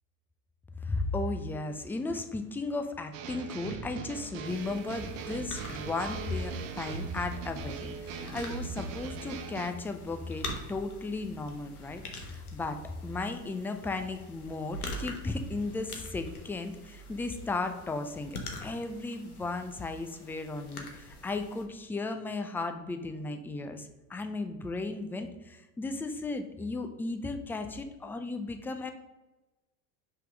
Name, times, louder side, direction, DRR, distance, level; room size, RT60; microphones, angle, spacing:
voice 1, 0.8-28.9, left 3 dB, 5° left, 7 dB, 0.4 m, -35 dB
sound 1, 3.1-9.7, right 6 dB, 55° right, 0.9 m, -40 dB
sound 2, 4.4-21.6, left 1 dB, 85° left, 1.1 m, -45 dB
5.5 x 3.7 x 5.0 m, 1.1 s
hypercardioid pair, 80°, 44 cm